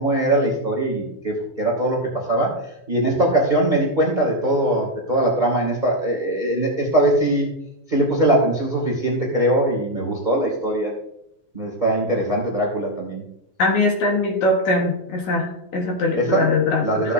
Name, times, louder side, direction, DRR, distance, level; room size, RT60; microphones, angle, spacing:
voice 1, 0.0-2.0 2.3-2.6 2.9-7.5 7.9-10.9 11.5-13.2 16.2-16.5 16.8-17.1, right 1 dB, 15° right, 0 dB, 2.0 m, -21 dB
voice 2, 13.6-17.1, left 2 dB, 60° left, 0 dB, 2.6 m, -21 dB
15.5 x 7.5 x 2.6 m, 0.79 s
omnidirectional pair, 4.1 m